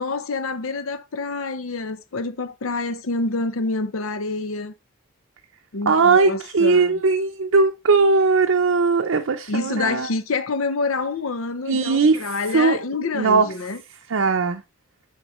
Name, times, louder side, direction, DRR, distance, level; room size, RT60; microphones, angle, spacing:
voice 1, 0.0-4.7 5.7-7.0 9.5-13.8, left 3 dB, 75° left, 0.7 m, -27 dB
voice 2, 5.9-10.1 11.7-12.8 13.1-13.5 14.1-14.6, right 4 dB, 70° right, 0.6 m, -19 dB
7.2 x 5.2 x 3.1 m
head